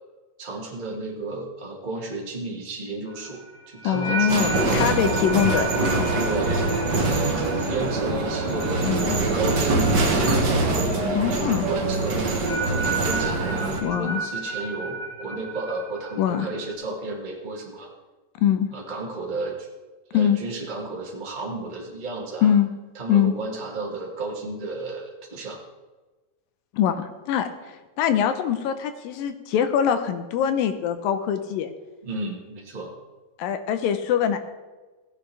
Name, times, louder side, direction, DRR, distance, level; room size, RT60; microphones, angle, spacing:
voice 1, 0.4-5.0 6.1-12.2 12.7-17.9 18.7-19.7 20.1-22.5 22.9-25.6 32.0-32.9, right 3 dB, 30° right, -3 dB, 0.9 m, -33 dB
sound 1, 3.1-10.2 10.5-10.9 12.1-16.7, right 3 dB, 65° left, 3.8 m, -34 dB
voice 2, 3.8-5.7 6.0-6.3 8.8-9.2 11.2-11.7 13.8-14.2 16.2-16.5 18.4-18.7 20.1-20.4 22.4-22.7 23.1-23.3 26.7-27.5 28.0-31.7 33.4-34.4, left 9 dB, 80° left, 9 dB, 2.5 m, -23 dB
sound 2, 4.3-13.8, right 2 dB, 90° right, 0.9 m, -24 dB
16.5 x 10.0 x 3.4 m, 1.2 s
omnidirectional pair, 4.0 m